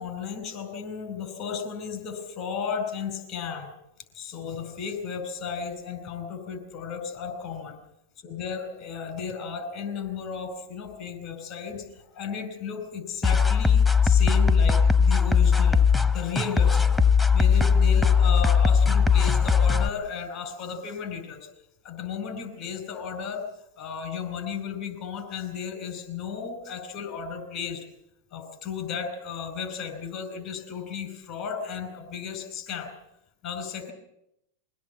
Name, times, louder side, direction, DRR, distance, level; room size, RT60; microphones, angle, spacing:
voice 1, 0.0-3.7 4.1-7.8 8.2-15.8 16.1-17.0 17.3-21.5 21.8-23.4 23.8-27.8 28.3-32.9 33.4-33.9, left 6 dB, 45° left, 7 dB, 4.8 m, -34 dB
sound 1, 13.2-19.9, left 6 dB, 10° left, 1.0 m, -19 dB
23.0 x 17.0 x 8.3 m, 0.81 s
hypercardioid pair, 120°, 0 cm